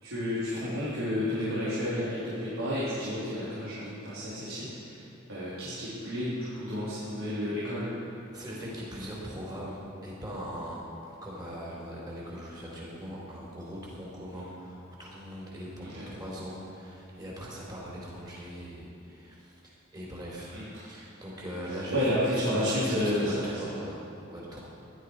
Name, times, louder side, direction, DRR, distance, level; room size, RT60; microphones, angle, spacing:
voice 1, 0.0-5.0 5.3-8.0 15.8-16.1 20.5-21.0 21.7-23.8, equal, 80° right, -12 dB, 3.8 m, -31 dB
voice 2, 8.3-20.5 20.9-22.0 22.5-24.6, equal, 20° right, -5 dB, 3.8 m, -40 dB
16.0 x 11.5 x 4.9 m, 2.6 s
head